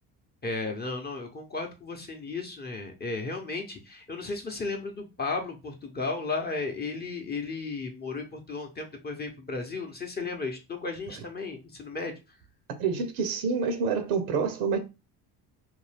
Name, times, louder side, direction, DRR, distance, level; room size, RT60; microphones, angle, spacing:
voice 1, 0.4-12.1, left 3 dB, 25° left, 0.7 m, -34 dB
voice 2, 12.8-14.8, right 5 dB, 85° right, 0.7 m, -27 dB
2.6 x 2.3 x 3.3 m
supercardioid pair, 95°, 40 cm